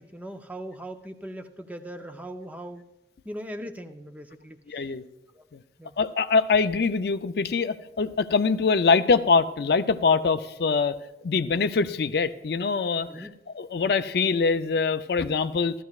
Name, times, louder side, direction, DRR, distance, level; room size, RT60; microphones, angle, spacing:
voice 1, 0.0-2.8 3.2-4.9 5.3-5.5 5.8-6.0 13.0-13.3, right 1 dB, 10° right, 6 dB, 0.5 m, -40 dB
voice 2, 4.7-5.0 5.5-5.6 6.0-11.0 11.2-13.3 13.5-15.7, left 4 dB, 60° left, 11 dB, 0.4 m, -23 dB
15.5 x 13.0 x 2.4 m, 0.93 s
head